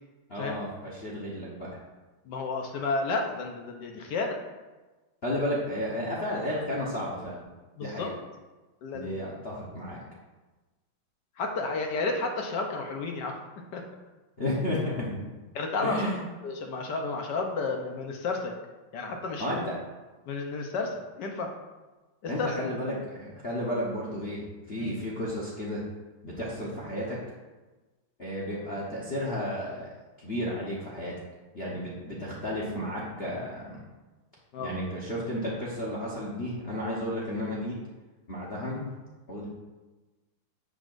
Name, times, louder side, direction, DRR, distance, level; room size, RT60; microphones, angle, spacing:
voice 1, 0.3-1.8 5.2-7.4 7.8-8.1 8.9-10.0 14.4-15.2 15.8-16.2 19.4-19.7 22.3-25.8 26.2-27.2 28.2-29.9 30.2-31.2 31.5-33.8 34.6-37.7 38.3-38.9 39.3-39.5, left 1 dB, 35° left, -5 dB, 1.1 m, -32 dB
voice 2, 2.3-4.4 7.8-8.1 8.8-9.3 11.4-13.4 13.7-13.8 15.5-16.1 16.4-18.5 18.9-19.7 20.3-21.5 22.2-22.7 24.8-25.0 34.5-34.7, left 3 dB, 60° left, 2 dB, 1.4 m, -32 dB
10.5 x 6.6 x 2.6 m, 1.2 s
omnidirectional pair, 2.3 m